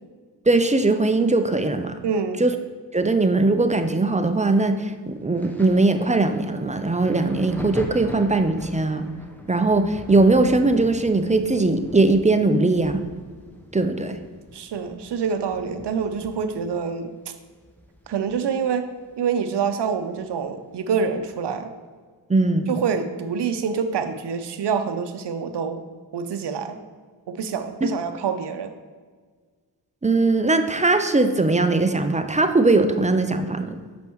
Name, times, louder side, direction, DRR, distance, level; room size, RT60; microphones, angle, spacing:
voice 1, 0.5-2.0 2.4-2.6 2.9-9.1 9.5-13.0 13.7-14.2 22.3-22.7 27.8-27.9 30.0-33.8, right 2 dB, 15° right, 8 dB, 0.5 m, -20 dB
voice 2, 2.0-2.4 14.5-17.1 18.1-18.9 19.2-21.7 22.7-25.8 26.1-26.8 27.3-28.7, right 6 dB, 70° right, 8 dB, 0.7 m, -26 dB
Thunder, 5.3-18.7 19.0-20.3 21.1-21.3, left 1 dB, 5° left, 0.9 m, -41 dB
7.0 x 5.2 x 3.1 m, 1.5 s
cardioid pair, 40°, 43 cm